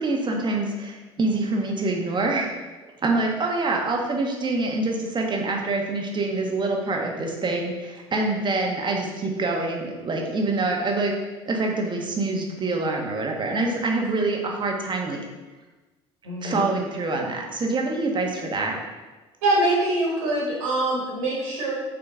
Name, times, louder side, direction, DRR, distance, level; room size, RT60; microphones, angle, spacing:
voice 1, 0.0-2.5 2.8-11.1 11.5-15.2 16.4-18.8, right 2 dB, 30° right, 1 dB, 1.4 m, -25 dB
voice 2, 16.2-16.6 19.4-21.7, right 1 dB, 70° right, -4 dB, 1.8 m, -24 dB
6.6 x 5.1 x 3.7 m, 1.2 s
figure-of-eight pair, 60°, 16 cm